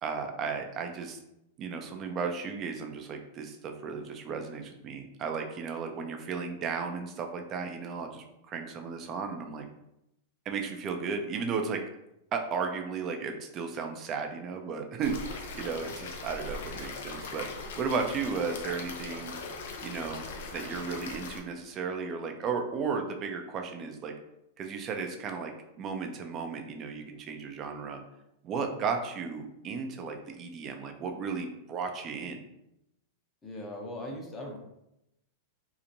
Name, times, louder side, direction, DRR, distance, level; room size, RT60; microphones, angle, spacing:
voice 1, 0.0-1.2 1.6-9.7 10.5-11.8 12.3-17.5 17.8-19.3 19.8-20.3 20.5-24.1 24.6-25.5 25.8-28.0 28.4-32.5, right 5 dB, 35° right, 4 dB, 0.4 m, -34 dB
sound 1, 15.0-21.4, left 3 dB, 70° left, 0.4 m, -40 dB
voice 2, 33.4-34.6, left 1 dB, 20° left, 0 dB, 0.7 m, -40 dB
2.8 x 2.1 x 2.6 m, 0.85 s
hypercardioid pair, 110°, 0 cm